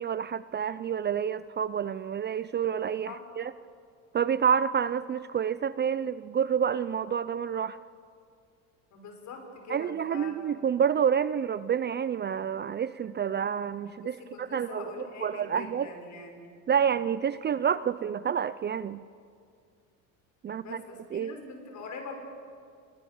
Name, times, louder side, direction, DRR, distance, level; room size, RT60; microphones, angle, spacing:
voice 1, 0.0-3.5 4.1-7.8 9.7-14.8 15.2-15.9 16.7-19.0 20.4-20.8 21.1-21.3, right 8 dB, 30° right, 15 dB, 0.6 m, -28 dB
voice 2, 8.9-10.4 14.0-16.5 20.5-22.1, left 4 dB, 50° left, 4 dB, 6.8 m, -43 dB
29.0 x 25.0 x 7.2 m, 2.2 s
supercardioid pair, 105°, 37 cm